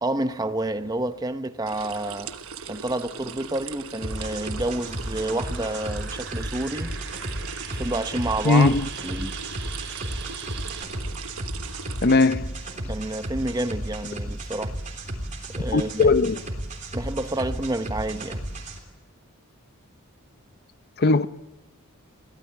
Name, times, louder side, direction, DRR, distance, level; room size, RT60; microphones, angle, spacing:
voice 1, 0.0-2.3 2.7-6.9 7.7-8.7 9.0-9.3 12.8-14.8 15.5-16.1 16.9-18.4, right 2 dB, 15° right, 0.8 m, -29 dB
sound 1, 1.7-12.1, right 6 dB, 70° right, 1.2 m, -40 dB
sound 2, 3.9-10.8, right 6 dB, 55° right, 4.7 m, -42 dB
sound 3, 4.0-18.8, right 1 dB, 35° right, 3.6 m, -34 dB
voice 2, 8.4-8.8 12.0-12.5 15.7-16.4 21.0-21.3, left 3 dB, 45° left, 0.7 m, -18 dB
23.5 x 17.5 x 8.6 m
head